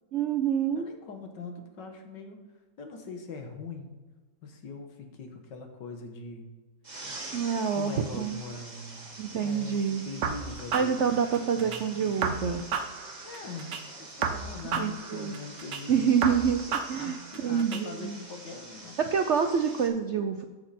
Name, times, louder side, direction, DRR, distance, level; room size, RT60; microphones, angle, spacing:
voice 1, 0.1-0.9 7.3-8.4 9.2-10.1 10.7-12.6 14.7-15.4 15.9-18.2 19.0-20.4, right 7 dB, 65° right, 6 dB, 0.7 m, -27 dB
voice 2, 0.7-2.4 2.8-4.0 4.4-6.5 7.7-9.1 9.4-11.0 11.5-12.4 13.2-16.2 17.0-19.0, left 4 dB, 85° left, 4 dB, 2.0 m, -42 dB
sound 1, 6.8-19.9, right 2 dB, 25° right, 1.5 m, -45 dB
sound 2, 10.2-11.8 12.2-13.8 14.2-15.8 16.2-17.8, right 6 dB, 85° right, 1.6 m, -33 dB
14.0 x 6.6 x 4.3 m, 1.3 s
omnidirectional pair, 1.9 m